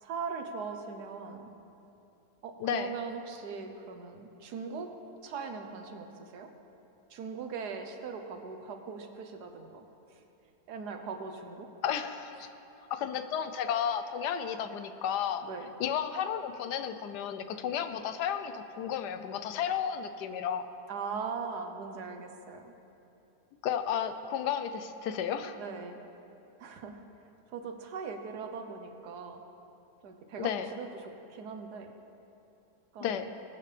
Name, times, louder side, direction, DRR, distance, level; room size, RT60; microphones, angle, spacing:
voice 1, 0.0-1.5 2.4-4.9 5.2-6.5 7.1-10.2 10.7-11.7 12.4-12.5 15.4-15.7 20.9-22.7 25.5-26.0 26.6-27.0 27.5-29.4 30.0-31.9 32.9-33.3, right 5 dB, 75° right, 6 dB, 1.5 m, -40 dB
voice 2, 2.6-2.9 11.8-12.5 12.9-15.4 15.8-20.7 23.6-25.6 30.4-30.7 33.0-33.3, left 8 dB, 85° left, 9 dB, 1.3 m, -33 dB
20.0 x 9.1 x 3.4 m, 2.9 s
omnidirectional pair, 1.7 m